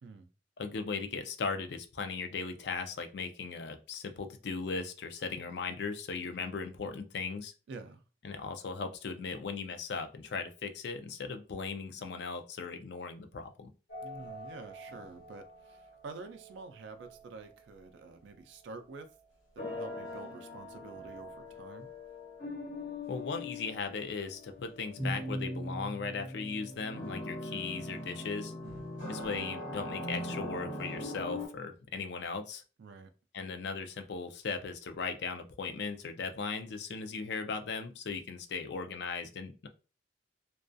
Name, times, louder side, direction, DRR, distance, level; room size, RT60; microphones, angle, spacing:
voice 1, 0.6-7.5 8.2-13.7 23.1-28.5 29.1-32.6 33.3-39.7, left 4 dB, 60° left, 0.4 m, -38 dB
voice 2, 7.7-8.0 14.0-19.1 19.6-21.9 28.6-28.9 32.8-33.1, right 3 dB, 70° right, 0.3 m, -48 dB
sound 1, 13.9-17.6 19.6-31.5, left 1 dB, 85° left, 1.1 m, -41 dB
2.3 x 2.3 x 2.5 m
head